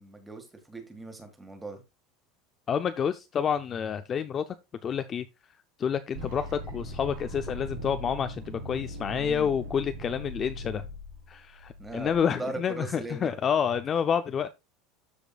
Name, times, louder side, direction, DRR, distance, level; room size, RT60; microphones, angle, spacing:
voice 1, 0.0-1.8 9.2-9.5 11.8-13.4, right 2 dB, 5° right, 1.7 m, -39 dB
voice 2, 2.7-4.5 4.8-5.3 5.8-10.8 11.3-14.5, left 7 dB, 20° left, 0.4 m, -29 dB
sound 1, 6.1-12.1, left 1 dB, 75° right, 3.9 m, -39 dB
13.5 x 5.1 x 2.3 m
cardioid pair, 175°, 0 cm